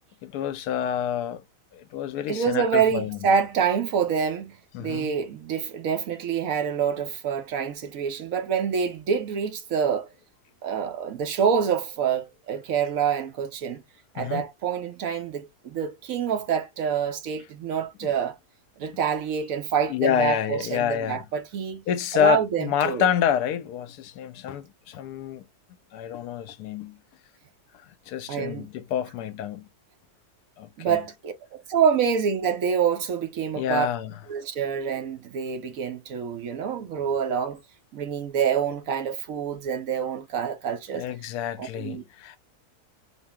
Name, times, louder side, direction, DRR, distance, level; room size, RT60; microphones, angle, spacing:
voice 1, 0.2-1.4 1.7-3.2 4.7-5.1 14.2-14.4 18.0-18.1 19.9-21.2 21.9-25.5 25.9-27.0 27.7-29.7 30.6-31.0 33.6-34.1 40.9-42.4, left 9 dB, 80° left, 1.1 m, -28 dB
voice 2, 2.3-10.1 10.6-13.8 14.1-18.4 18.8-21.8 22.1-23.1 28.3-28.7 30.8-33.9 34.3-37.6 37.9-41.0 41.6-42.0, right 7 dB, 65° right, 1.0 m, -26 dB
4.1 x 2.0 x 3.4 m
omnidirectional pair, 1.7 m